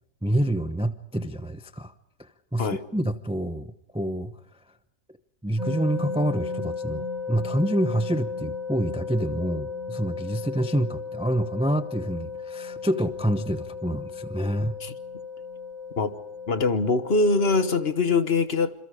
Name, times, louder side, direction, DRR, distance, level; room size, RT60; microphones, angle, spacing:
voice 1, 0.2-1.9 2.2-4.3 5.4-14.8, right 1 dB, 5° right, 0.5 m, -27 dB
sound 1, 5.6-17.9, left 5 dB, 25° right, 1.8 m, -35 dB
voice 2, 16.5-18.7, left 3 dB, 40° left, 1.3 m, -23 dB
27.5 x 27.0 x 5.0 m
omnidirectional pair, 1.7 m